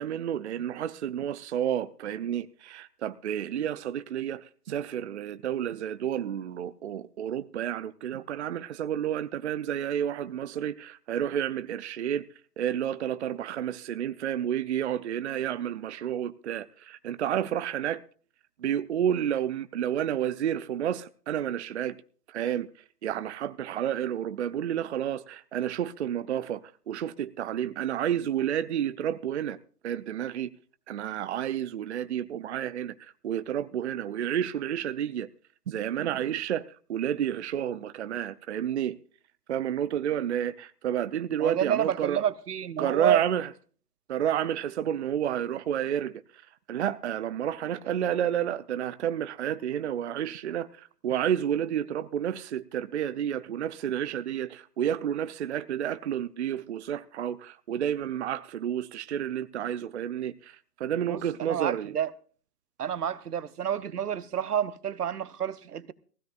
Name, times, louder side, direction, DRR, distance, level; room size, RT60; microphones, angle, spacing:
voice 1, 0.0-12.2 12.6-18.0 18.6-22.0 22.3-22.7 23.0-29.6 29.8-30.5 30.9-35.3 35.7-36.6 36.9-39.0 39.5-42.2 42.8-43.5 44.1-46.4 46.7-61.9, right 10 dB, 50° right, 0.6 m, -30 dB
voice 2, 41.4-43.2 61.1-62.1 62.8-65.9, right 9 dB, 80° right, 1.0 m, -29 dB
18.5 x 16.0 x 2.4 m
hypercardioid pair, 145°, 46 cm